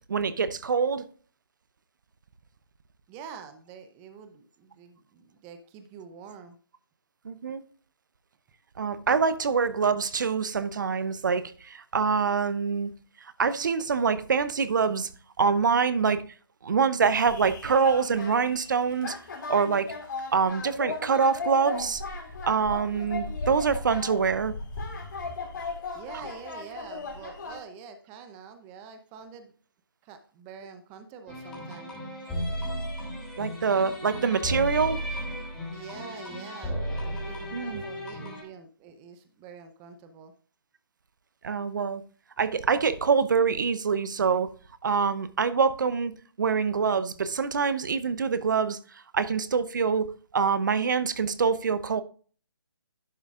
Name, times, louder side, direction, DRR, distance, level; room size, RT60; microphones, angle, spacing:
voice 1, 0.1-1.0 7.2-7.6 8.8-12.9 13.4-15.1 15.4-16.2 16.6-19.2 19.5-19.9 20.3-22.0 22.4-24.5 33.4-35.0 37.5-37.8 41.4-42.0 42.4-44.5 44.8-46.1 46.4-48.8 49.1-52.0, right 5 dB, 55° right, 0.7 m, -25 dB
voice 2, 3.1-6.6 25.6-29.5 30.0-31.9 35.7-36.8 37.1-40.3, right 6 dB, 15° right, 0.7 m, -46 dB
sound 1, 17.2-27.6, left 3 dB, 50° left, 3.0 m, -37 dB
sound 2, 31.3-38.4, equal, 5° left, 3.1 m, -34 dB
11.0 x 6.8 x 2.5 m
figure-of-eight pair, 150°, 12 cm